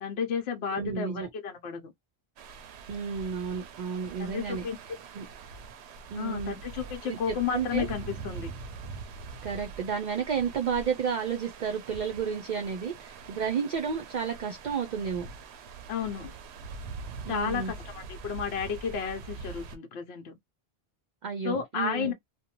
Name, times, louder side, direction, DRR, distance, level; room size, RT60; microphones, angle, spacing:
voice 1, 0.0-1.9 4.2-4.8 6.1-8.5 15.9-16.3 17.3-20.3 21.4-22.1, left 7 dB, 75° left, 0.9 m, -32 dB
voice 2, 0.7-1.3 2.9-4.7 5.1-5.3 6.1-6.6 7.0-7.9 9.4-15.3 17.2-17.7 21.2-22.1, right 6 dB, 55° right, 0.5 m, -32 dB
sound 1, 2.4-19.8, right 4 dB, 90° right, 0.8 m, -43 dB
2.6 x 2.1 x 2.8 m
omnidirectional pair, 1.1 m